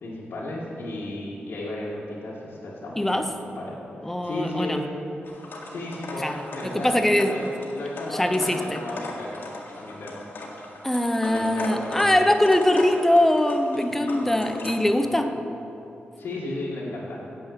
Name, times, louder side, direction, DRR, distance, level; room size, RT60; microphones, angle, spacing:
voice 1, 0.0-3.2 3.6-4.9 5.7-7.4 7.7-9.5 9.8-10.2 11.2-12.3 13.9-14.4 15.0-15.2 16.2-17.2, left 1 dB, 85° left, -8 dB, 2.0 m, -34 dB
voice 2, 3.0-3.3 4.0-4.8 6.2-7.5 8.1-8.8 10.8-15.4, left 1 dB, 5° left, 7 dB, 0.7 m, -22 dB
sound 1, 5.2-14.7, left 2 dB, 65° left, 1.7 m, -39 dB
8.9 x 7.9 x 8.0 m, 2.9 s
wide cardioid pair, 145°, 4 cm